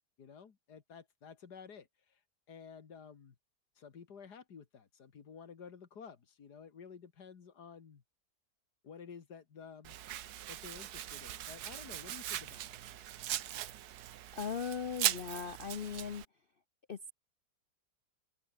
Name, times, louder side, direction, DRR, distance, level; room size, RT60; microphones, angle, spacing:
voice 1, 0.2-2.2 2.5-3.4 3.8-8.0 8.8-10.0 10.5-13.1, left 6 dB, 70° left, 2.4 m, -52 dB
Domestic sounds home sounds, 9.8-16.2, right 12 dB, 70° right, 1.3 m, -39 dB
voice 2, 14.3-16.2 16.9-17.1, left 6 dB, 50° left, 0.7 m, -38 dB
omnidirectional pair, 1.8 m